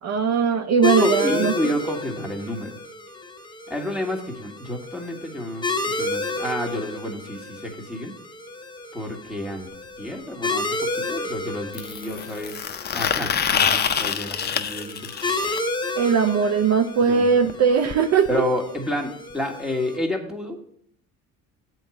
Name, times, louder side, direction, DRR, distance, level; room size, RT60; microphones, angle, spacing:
voice 1, 0.0-1.5 16.0-18.5, right 6 dB, 55° right, 8 dB, 0.6 m, -20 dB
sound 1, 0.8-20.0, left 2 dB, 15° left, 0.9 m, -31 dB
voice 2, 1.0-2.8 3.7-8.1 8.9-9.7 10.0-12.6 12.9-15.1 17.1-17.3 18.3-20.6, left 1 dB, ahead, 2 dB, 1.7 m, -30 dB
sound 2, 9.7-9.8 11.7-15.6 17.5-17.6 17.9-18.0 18.3-18.4 19.3-19.4, left 7 dB, 30° left, 0.6 m, -26 dB
7.7 x 4.6 x 7.1 m, 0.66 s
cardioid pair, 100°, 32 cm